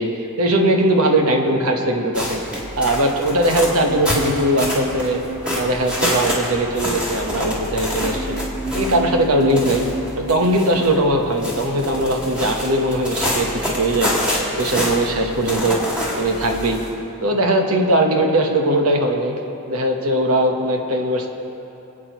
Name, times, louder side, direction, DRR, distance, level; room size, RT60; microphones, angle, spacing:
voice 1, 0.4-2.4 2.7-5.2 5.5-8.4 8.7-9.8 10.2-14.2 14.6-15.8 16.1-16.8 17.2-19.3 19.7-21.3, right 1 dB, 75° right, 3 dB, 1.2 m, -19 dB
sound 1, 2.1-16.9, equal, 5° right, 2.2 m, -27 dB
sound 2, 3.6-12.9 13.2-13.3, equal, 40° right, 1.6 m, -33 dB
25.5 x 8.6 x 3.1 m, 3.0 s
head